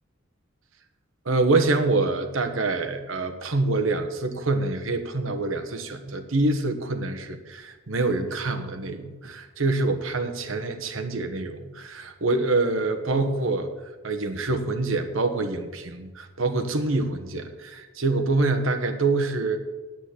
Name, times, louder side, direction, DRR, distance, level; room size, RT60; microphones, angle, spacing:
voice 1, 1.2-13.7 14.0-19.6, right 3 dB, 90° right, 6 dB, 1.3 m, -26 dB
9.3 x 8.6 x 7.6 m, 1.2 s
head